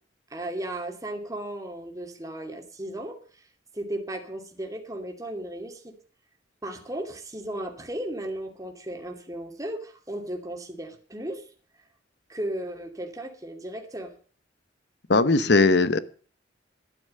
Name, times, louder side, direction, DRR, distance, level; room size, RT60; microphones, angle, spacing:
voice 1, 0.3-3.4 3.7-5.9 6.6-11.5 12.3-14.1, right 1 dB, 20° right, 3 dB, 2.6 m, -35 dB
voice 2, 15.1-16.0, left 3 dB, 65° left, 14 dB, 1.0 m, -19 dB
13.0 x 11.0 x 5.5 m, 0.44 s
head